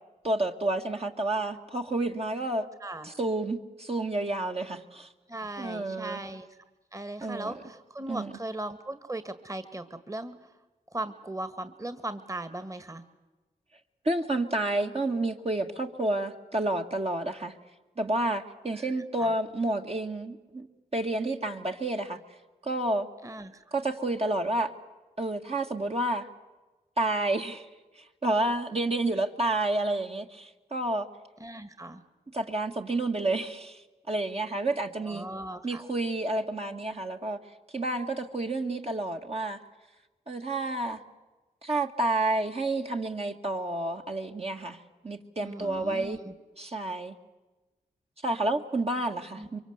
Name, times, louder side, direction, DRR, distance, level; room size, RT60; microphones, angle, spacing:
voice 1, 0.2-2.7 3.0-5.1 5.6-6.2 7.2-7.5 8.1-8.3 14.1-17.5 18.0-20.7 20.9-22.2 22.6-23.1 23.7-24.7 25.2-26.3 27.0-27.7 28.0-31.1 32.3-35.3 35.6-37.4 37.7-39.6 40.3-41.0 41.6-46.2 46.6-47.1 48.2-49.6, right 2 dB, 40° right, 2 dB, 1.9 m, -30 dB
voice 2, 5.3-6.5 6.9-10.3 10.9-13.0 18.7-19.3 23.2-23.6 31.4-32.0 35.0-35.8 45.4-46.3 49.4-49.5, right 1 dB, 20° right, 11 dB, 1.9 m, -38 dB
24.0 x 24.0 x 8.1 m, 1.2 s
cardioid pair, 45°, 16 cm